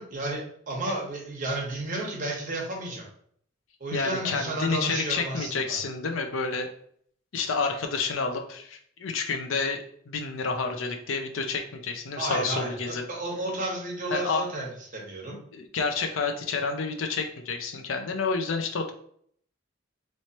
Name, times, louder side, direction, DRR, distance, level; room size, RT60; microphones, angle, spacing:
voice 1, 0.0-3.1 3.8-5.7 12.2-14.6 14.9-15.4, right 2 dB, 40° right, -2 dB, 1.1 m, -32 dB
voice 2, 3.9-6.7 7.3-13.0 14.1-14.4 15.3-18.9, left 4 dB, 90° left, 5 dB, 0.5 m, -29 dB
3.1 x 3.1 x 2.8 m, 0.63 s
head